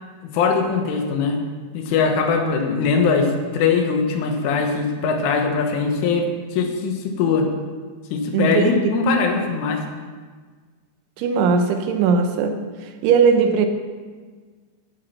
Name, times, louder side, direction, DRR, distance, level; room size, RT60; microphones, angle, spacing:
voice 1, 0.2-1.4 1.7-7.5 8.1-9.8, left 5 dB, 80° left, 3 dB, 3.9 m, -21 dB
voice 2, 8.3-8.8 11.2-12.6 13.0-13.7, right 5 dB, 80° right, 6 dB, 3.3 m, -18 dB
16.0 x 8.4 x 6.0 m, 1.5 s
omnidirectional pair, 5.6 m